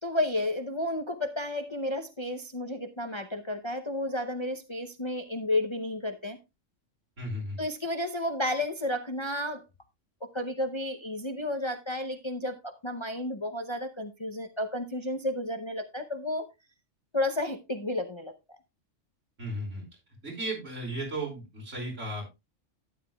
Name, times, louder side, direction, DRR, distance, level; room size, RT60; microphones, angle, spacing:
voice 1, 0.0-6.4 7.6-9.6 10.2-16.5 17.1-18.3, left 1 dB, 30° left, 7 dB, 0.7 m, -32 dB
voice 2, 7.2-7.6 19.4-19.8 20.2-22.3, right 1 dB, 75° right, 0 dB, 5.2 m, -35 dB
12.5 x 9.4 x 2.3 m, 0.23 s
omnidirectional pair, 1.3 m